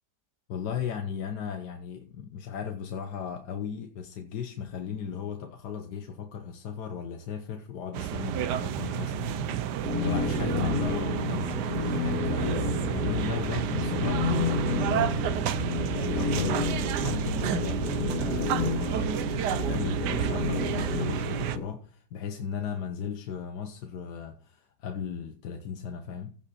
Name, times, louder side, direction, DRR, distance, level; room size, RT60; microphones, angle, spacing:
voice 1, 0.5-15.5 15.9-26.3, left 7 dB, 80° left, 1.5 m, -36 dB
sound 1, 7.9-21.6, right 10 dB, 80° right, 1.3 m, -30 dB
sound 2, 9.8-21.6, left 4 dB, 60° left, 2.6 m, -31 dB
16.0 x 5.3 x 4.2 m
omnidirectional pair, 1.8 m